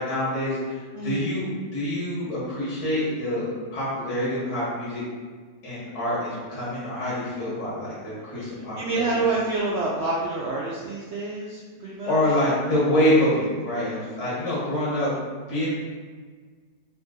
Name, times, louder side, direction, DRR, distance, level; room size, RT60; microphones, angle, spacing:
voice 1, 0.0-5.0 5.6-9.1 12.1-15.1 15.5-15.7, left 1 dB, 80° left, -8 dB, 1.8 m, -26 dB
voice 2, 0.9-1.3 8.3-12.2, right 3 dB, 90° right, -5 dB, 0.6 m, -28 dB
3.8 x 2.7 x 3.6 m, 1.5 s
omnidirectional pair, 1.8 m